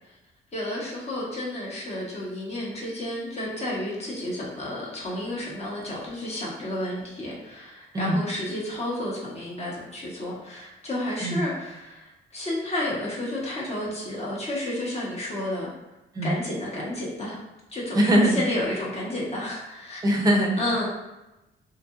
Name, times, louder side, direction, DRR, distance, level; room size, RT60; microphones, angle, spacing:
voice 1, 0.5-15.7 16.2-17.4 17.7-20.0 20.6-20.9, left 1 dB, 30° left, -5 dB, 1.0 m, -31 dB
voice 2, 17.9-18.3 20.0-20.5, equal, 20° right, 0 dB, 0.6 m, -21 dB
2.8 x 2.5 x 2.4 m, 0.97 s
cardioid pair, 90°, 20 cm